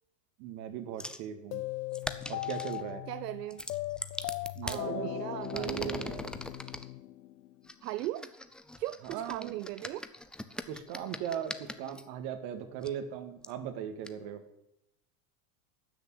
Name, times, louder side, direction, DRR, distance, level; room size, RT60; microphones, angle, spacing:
voice 1, 0.4-1.7 2.3-3.0 4.6-5.1 5.5-6.2 9.0-9.6 10.7-14.4, right 9 dB, 55° right, 6 dB, 2.0 m, -38 dB
sound 1, 1.0-1.3 1.9-2.8 3.5-4.8 5.4-6.9 7.7-12.0 12.8-12.9 13.4-13.5 14.0-14.1, left 1 dB, ahead, 0.4 m, -41 dB
sound 2, 1.5-7.7, left 16 dB, 80° left, 0.8 m, -39 dB
voice 2, 3.1-3.6 4.6-6.1 7.8-8.3 8.8-10.0, right 16 dB, 80° right, 16 dB, 0.7 m, -37 dB
13.0 x 6.5 x 9.5 m, 0.82 s
supercardioid pair, 120°, 47 cm